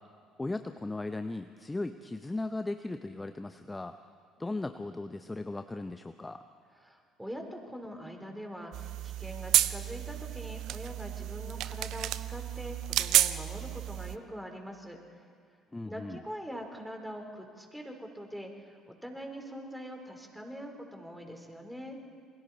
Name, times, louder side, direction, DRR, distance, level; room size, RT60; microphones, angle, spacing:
voice 1, 0.4-4.0 4.4-6.4 15.7-16.2, left 2 dB, 15° left, 9 dB, 0.8 m, -37 dB
voice 2, 6.8-15.0 15.8-22.0, equal, 5° right, 3 dB, 4.0 m, -43 dB
sound 1, 8.7-14.2, right 13 dB, 60° right, 0.6 m, -31 dB
28.0 x 22.5 x 4.2 m, 2.2 s
hypercardioid pair, 55°, 0 cm